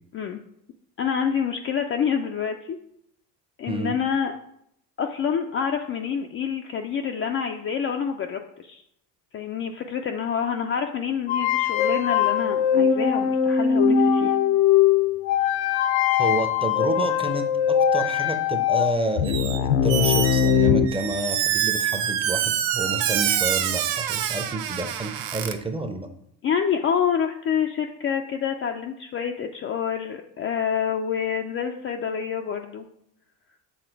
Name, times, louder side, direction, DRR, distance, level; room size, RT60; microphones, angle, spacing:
voice 1, 1.0-2.8 3.6-4.3 5.0-8.8 9.3-14.4 26.4-32.9, left 7 dB, 30° left, 3 dB, 0.4 m, -27 dB
sound 1, 11.3-20.9, left 8 dB, 70° left, 0.7 m, -21 dB
voice 2, 16.2-26.1, right 2 dB, 10° right, 6 dB, 0.6 m, -30 dB
Squeak, 19.2-19.6 19.9-25.5, right 10 dB, 65° right, 0.8 m, -26 dB
7.1 x 3.6 x 4.6 m, 0.73 s
supercardioid pair, 90°, 49 cm